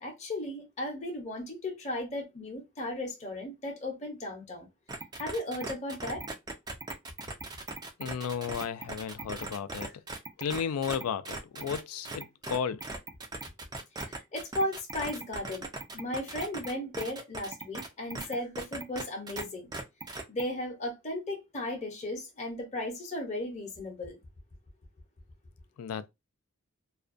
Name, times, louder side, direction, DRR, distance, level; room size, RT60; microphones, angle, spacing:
voice 1, 0.0-4.7 5.2-6.3 14.0-15.7 15.9-19.7 20.3-24.2, left 1 dB, 30° left, 0.6 m, -35 dB
sound 1, 4.9-19.4 19.7-20.4, right 3 dB, 20° right, 0.3 m, -39 dB
voice 2, 8.0-9.9 10.4-12.9 25.8-26.1, left 7 dB, 85° left, 0.3 m, -34 dB
2.4 x 2.1 x 2.5 m
head